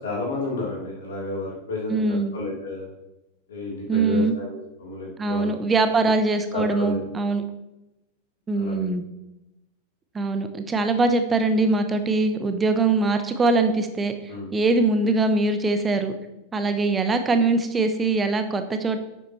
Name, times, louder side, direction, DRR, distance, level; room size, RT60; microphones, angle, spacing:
voice 1, 0.0-2.9 3.5-5.5 6.0-6.1 6.5-7.0 8.5-8.9 14.3-14.5, left 2 dB, 65° left, -4 dB, 3.7 m, -31 dB
voice 2, 1.9-2.4 3.9-4.3 5.2-7.4 8.5-9.0 10.1-14.1 14.5-16.1 16.5-19.0, right 3 dB, 15° right, 8 dB, 1.0 m, -22 dB
10.5 x 8.3 x 3.3 m, 0.94 s
figure-of-eight pair, 90°, 0 cm